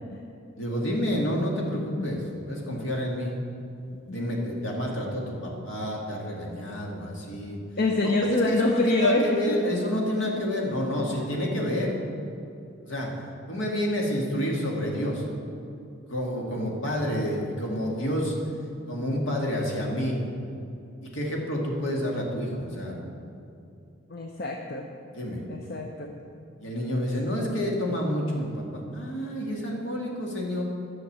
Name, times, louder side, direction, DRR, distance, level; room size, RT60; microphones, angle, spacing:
voice 1, 0.6-2.2 2.5-3.3 4.1-7.6 8.0-11.9 12.8-13.1 13.5-15.2 16.1-18.4 18.9-20.2 21.0-23.0 25.1-25.4 26.6-30.6, equal, 65° left, -2 dB, 2.1 m, -29 dB
voice 2, 7.8-9.7 10.2-10.3 24.1-24.9 25.5-26.1 27.2-27.3, left 2 dB, 50° left, 2 dB, 0.7 m, -26 dB
10.5 x 6.5 x 7.3 m, 2.7 s
head